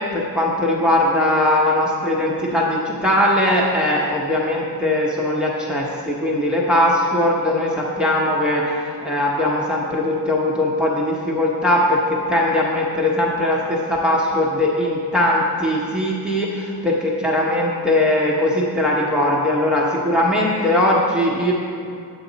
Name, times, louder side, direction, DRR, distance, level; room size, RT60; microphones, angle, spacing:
voice 1, 0.0-21.5, left 1 dB, ahead, -3 dB, 0.8 m, -20 dB
9.2 x 8.2 x 3.9 m, 2.4 s
wide cardioid pair, 155°, 37 cm